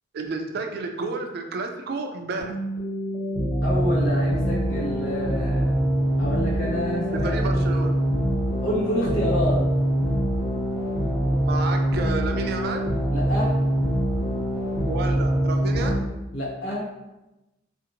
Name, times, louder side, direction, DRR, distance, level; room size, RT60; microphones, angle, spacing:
voice 1, 0.1-2.5 7.1-8.0 11.4-12.9 14.9-16.0, right 3 dB, 55° right, 4 dB, 0.3 m, -31 dB
sound 1, 2.4-16.0, right 1 dB, 5° right, 1.0 m, -24 dB
voice 2, 3.6-5.8 6.2-7.6 8.6-9.6 13.1-13.6 16.3-16.9, equal, 85° left, -5 dB, 1.0 m, -28 dB
2.5 x 2.5 x 2.8 m, 0.99 s
head